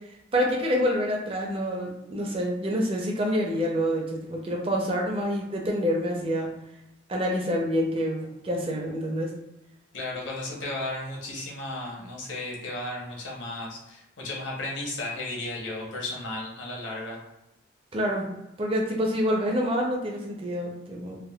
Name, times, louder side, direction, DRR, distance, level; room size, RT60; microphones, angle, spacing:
voice 1, 0.3-6.5 7.1-9.3 17.9-18.3 18.6-21.2, equal, 30° right, -1 dB, 0.5 m, -27 dB
voice 2, 9.9-17.2, left 2 dB, 70° left, -2 dB, 0.8 m, -34 dB
3.4 x 2.2 x 2.2 m, 0.90 s
head